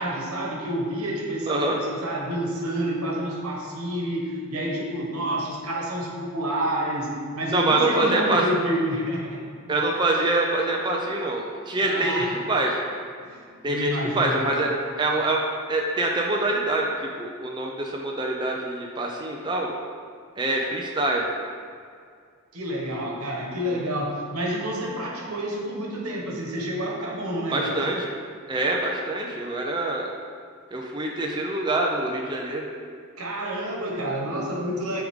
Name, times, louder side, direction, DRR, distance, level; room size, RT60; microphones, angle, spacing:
voice 1, 0.0-9.4 11.8-12.3 13.2-14.4 22.5-27.8 33.2-35.0, equal, 90° right, -2 dB, 1.2 m, -29 dB
voice 2, 1.5-1.8 7.5-8.4 9.7-12.8 13.6-14.7 15.0-15.4 15.7-19.7 20.4-21.3 27.5-28.1 28.5-30.1 30.7-32.6, right 2 dB, 20° right, -1 dB, 0.5 m, -25 dB
9.1 x 3.6 x 3.6 m, 2.2 s
head